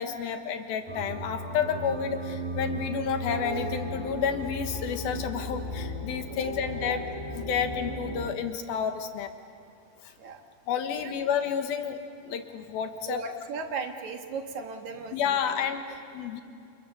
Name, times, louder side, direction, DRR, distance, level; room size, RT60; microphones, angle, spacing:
voice 1, 0.0-7.0 7.3-9.3 10.7-12.0 12.2-13.2 15.1-16.4, left 7 dB, 90° left, 6 dB, 3.4 m, -30 dB
sound 1, 0.9-8.3, equal, 35° right, 0.6 m, -36 dB
voice 2, 13.1-15.6, right 4 dB, 60° right, 5 dB, 2.5 m, -36 dB
29.5 x 29.0 x 7.0 m, 2.5 s
omnidirectional pair, 4.2 m